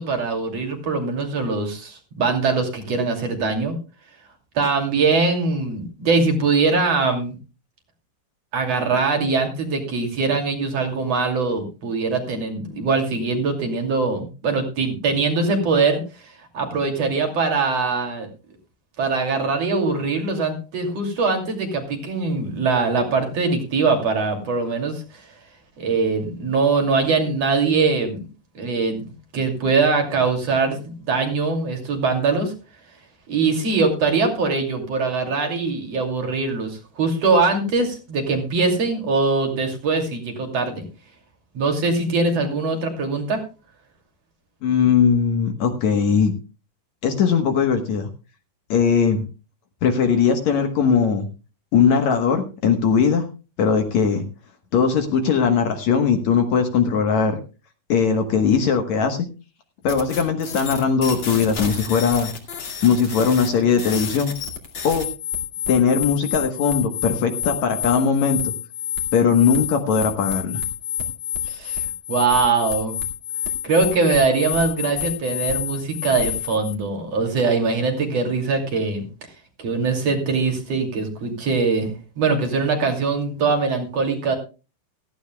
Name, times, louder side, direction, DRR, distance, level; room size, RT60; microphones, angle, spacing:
voice 1, 0.0-3.8 4.6-7.3 8.5-18.3 19.0-25.3 25.8-28.3 28.6-32.5 33.3-40.9 41.6-43.4 71.5-73.0 73.6-79.1 79.6-84.4, right 4 dB, 50° right, 4 dB, 3.5 m, -22 dB
voice 2, 44.6-46.3 47.0-48.1 48.7-49.2 49.8-51.3 51.7-53.3 53.6-54.2 54.7-57.4 57.9-59.3 59.8-62.3 62.8-64.3 64.8-65.1 65.7-68.5 69.1-70.6, left 6 dB, 65° left, 6 dB, 2.3 m, -19 dB
sound 1, 59.9-76.7, left 9 dB, 40° left, 3.0 m, -29 dB
16.5 x 15.0 x 2.3 m, 0.32 s
omnidirectional pair, 3.9 m